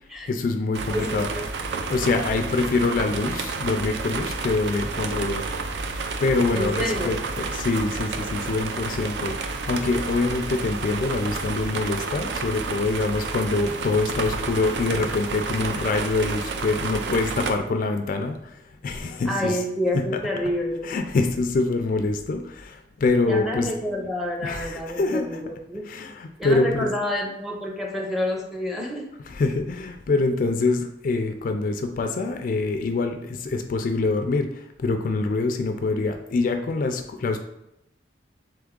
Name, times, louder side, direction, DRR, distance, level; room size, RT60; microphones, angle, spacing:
voice 1, 0.3-1.3 1.9-5.4 6.2-19.6 19.9-20.0 20.8-23.7 24.4-25.3 25.9-26.9 29.3-37.4, left 3 dB, 50° left, 6 dB, 0.3 m, -25 dB
sound 1, 0.7-17.5, right 4 dB, 75° right, 0.4 m, -30 dB
voice 2, 0.9-1.5 6.5-7.1 19.3-20.9 23.3-25.8 26.4-29.1, equal, ahead, -1 dB, 0.6 m, -28 dB
3.4 x 3.3 x 3.7 m, 0.85 s
head